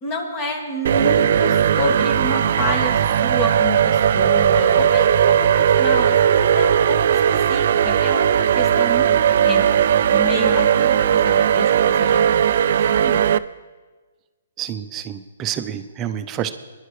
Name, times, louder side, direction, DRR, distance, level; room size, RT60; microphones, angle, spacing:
voice 1, 0.0-9.1 9.4-9.7 10.1-13.3, left 1 dB, 30° left, 2 dB, 2.0 m, -28 dB
sound 1, 0.8-13.4, right 9 dB, 55° right, 0.4 m, -17 dB
voice 2, 14.6-16.5, right 10 dB, 20° right, 9 dB, 0.7 m, -28 dB
21.0 x 11.0 x 3.3 m, 1.3 s
hypercardioid pair, 150°, 0 cm